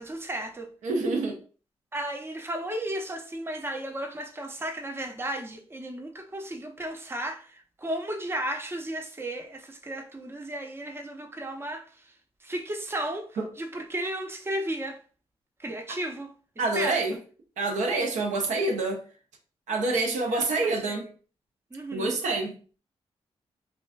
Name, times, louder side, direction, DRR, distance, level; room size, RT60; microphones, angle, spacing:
voice 1, 0.0-0.7 1.9-12.1 12.4-15.0 15.6-16.3 16.7-17.0 19.9-21.0 21.7-22.1, right 1 dB, 20° right, 0.6 m, -34 dB
voice 2, 0.8-1.4 13.4-13.5 16.6-17.2 17.6-19.0 19.7-21.0 21.9-22.5, right 3 dB, 80° right, 0.6 m, -27 dB
2.4 x 2.2 x 2.3 m
supercardioid pair, 50°, 12 cm